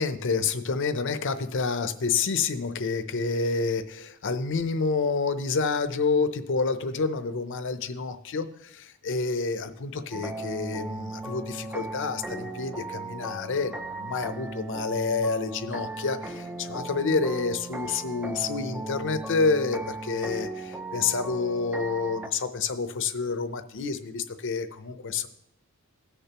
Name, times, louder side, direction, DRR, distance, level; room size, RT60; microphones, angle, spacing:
voice 1, 0.0-25.3, left 4 dB, 55° left, 11 dB, 0.6 m, -28 dB
sound 1, 10.1-22.3, right 2 dB, 5° right, 0.4 m, -37 dB
17.0 x 6.7 x 3.0 m, 0.81 s
head